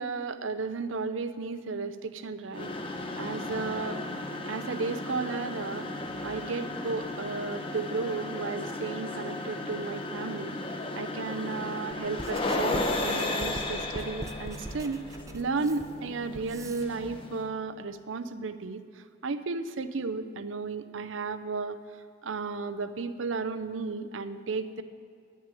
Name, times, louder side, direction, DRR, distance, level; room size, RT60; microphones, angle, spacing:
voice 1, 0.0-2.7 3.2-4.0 4.5-5.9 6.2-10.5 10.9-15.0 15.3-21.8 22.2-24.8, right 4 dB, 85° right, 11 dB, 0.6 m, -34 dB
sound 1, 2.5-17.5, left 2 dB, 25° left, 0.9 m, -35 dB
Writing, 11.9-16.9, right 2 dB, 15° right, 0.4 m, -42 dB
11.5 x 6.4 x 9.0 m, 2.3 s
head